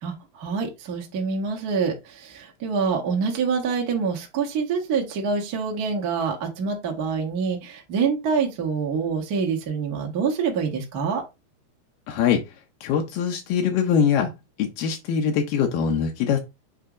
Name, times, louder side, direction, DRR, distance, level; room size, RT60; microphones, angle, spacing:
voice 1, 0.0-11.2, right 5 dB, 50° right, 1.1 m, -26 dB
voice 2, 12.1-12.4 12.8-14.3 14.6-16.4, left 7 dB, 80° left, 2.5 m, -22 dB
7.7 x 2.7 x 4.8 m
omnidirectional pair, 3.9 m